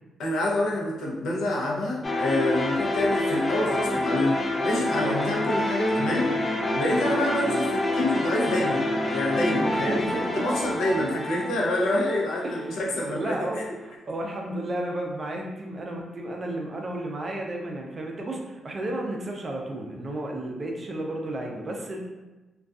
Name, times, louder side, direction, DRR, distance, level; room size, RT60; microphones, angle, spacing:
voice 1, 0.2-4.4 4.6-6.3 6.7-13.6, left 1 dB, 80° left, -3 dB, 0.6 m, -27 dB
sound 1, 2.0-12.9, left 1 dB, 25° left, 0.3 m, -27 dB
voice 2, 9.6-10.3 12.4-22.0, right 1 dB, 35° right, 0 dB, 0.4 m, -33 dB
2.5 x 2.3 x 2.3 m, 1.1 s
cardioid pair, 105°, 0 cm